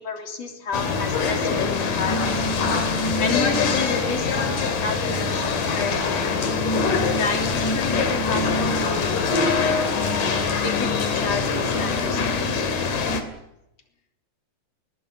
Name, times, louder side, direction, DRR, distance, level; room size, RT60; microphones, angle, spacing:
voice 1, 0.0-2.7 3.2-6.7 7.1-9.4 10.6-12.5, left 4 dB, 50° left, 4 dB, 4.3 m, -31 dB
sound 1, 0.7-13.2, left 4 dB, 70° left, 4.3 m, -23 dB
21.5 x 19.5 x 9.6 m, 0.84 s
omnidirectional pair, 3.9 m